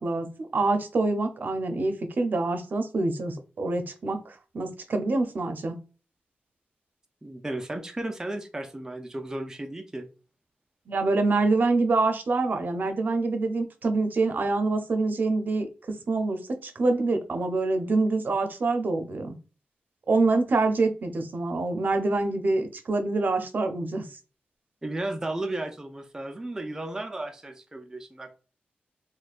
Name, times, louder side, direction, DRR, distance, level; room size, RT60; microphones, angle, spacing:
voice 1, 0.0-5.8 10.9-19.4 20.1-24.0, right 3 dB, 60° right, 0.6 m, -26 dB
voice 2, 7.2-10.1 24.8-28.4, right 1 dB, 15° right, 0.4 m, -34 dB
4.1 x 2.2 x 2.4 m
wide cardioid pair, 90°, 4 cm